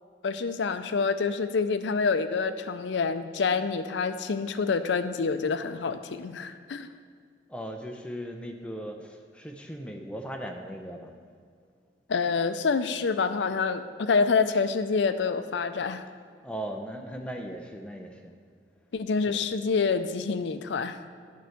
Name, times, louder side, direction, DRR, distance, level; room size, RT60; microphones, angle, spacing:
voice 1, 0.2-6.9 12.1-16.0 18.9-21.0, left 5 dB, 80° left, 10 dB, 0.5 m, -27 dB
voice 2, 7.5-11.1 16.4-18.3, equal, 5° left, 3 dB, 0.6 m, -38 dB
9.3 x 4.6 x 6.5 m, 2.1 s
head